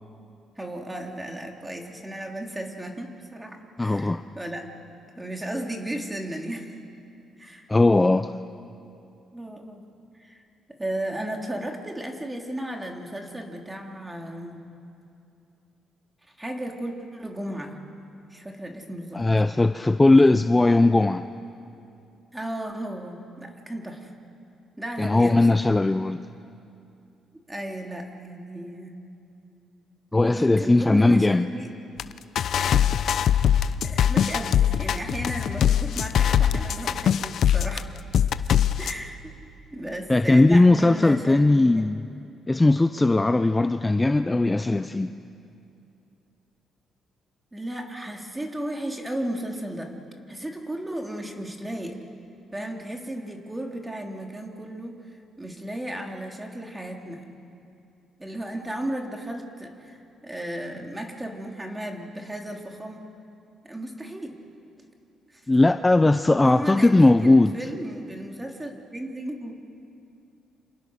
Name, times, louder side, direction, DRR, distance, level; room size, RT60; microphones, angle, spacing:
voice 1, 0.6-4.7 5.1-6.8 7.4-7.7 9.3-9.9 10.1-10.4 10.7-14.6 16.4-17.8 18.3-19.2 20.2-20.4 22.3-24.1 24.8-25.7 27.5-29.0 30.2-31.7 33.8-37.9 38.8-39.3 39.7-41.9 47.5-49.9 50.3-52.0 52.5-55.1 55.4-57.3 58.2-63.1 63.6-64.3 64.8-64.9 65.3-65.4 66.4-69.6, right 1 dB, 15° right, 2 dB, 3.4 m, -35 dB
voice 2, 3.8-4.2 7.7-8.3 19.1-21.2 25.0-26.2 30.1-31.5 40.1-42.0 42.5-45.1 65.5-67.5, left 2 dB, 15° left, 10 dB, 0.6 m, -19 dB
sound 1, 32.0-32.1 32.4-37.8 38.1-38.9, left 9 dB, 65° left, 0.7 m, -22 dB
30.0 x 27.0 x 6.6 m, 2.6 s
cardioid pair, 90°, 0 cm